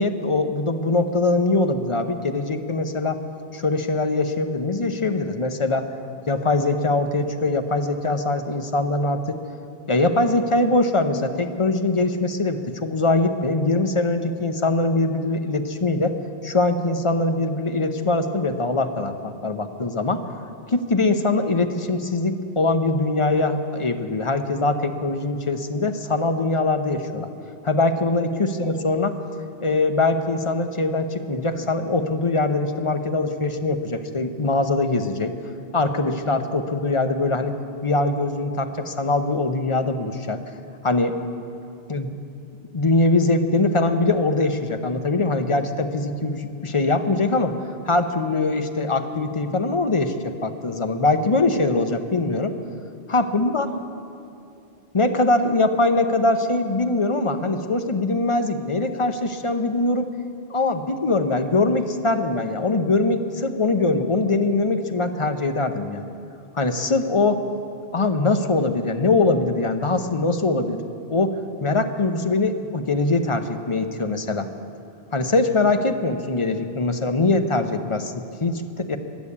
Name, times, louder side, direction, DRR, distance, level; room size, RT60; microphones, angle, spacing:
voice 1, 0.0-3.2 3.5-5.9 6.3-9.4 9.9-16.2 16.4-20.2 20.7-27.3 27.6-29.2 29.6-35.3 35.7-37.6 37.8-40.4 40.8-41.1 41.9-42.1 42.7-47.6 47.8-52.5 53.1-53.7 54.9-60.1 60.5-66.0 66.5-67.4 67.9-70.8 71.1-74.5 75.1-79.0, left 2 dB, 35° left, 7 dB, 0.8 m, -22 dB
15.0 x 10.5 x 8.5 m, 2.6 s
omnidirectional pair, 1.0 m